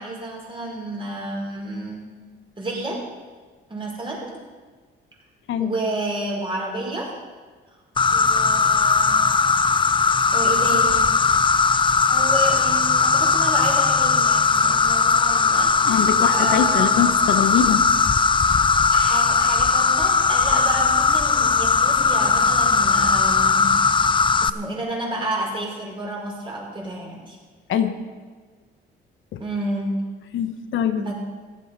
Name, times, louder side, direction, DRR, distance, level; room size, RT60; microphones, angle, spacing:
voice 1, 0.0-2.0 2.6-3.0 3.7-4.4 5.6-7.2 8.1-9.3 10.3-11.1 12.1-17.0 18.9-23.7 24.4-27.4 29.4-29.9 31.0-31.1, right 2 dB, 25° right, -3 dB, 5.3 m, -30 dB
Insect, 8.0-24.5, left 5 dB, 25° left, 0.5 m, -18 dB
voice 2, 15.9-17.8 27.7-27.9 29.3-29.4 30.3-31.0, left 8 dB, 75° left, 8 dB, 1.1 m, -22 dB
15.0 x 11.5 x 5.6 m, 1.4 s
cardioid pair, 90°, 20 cm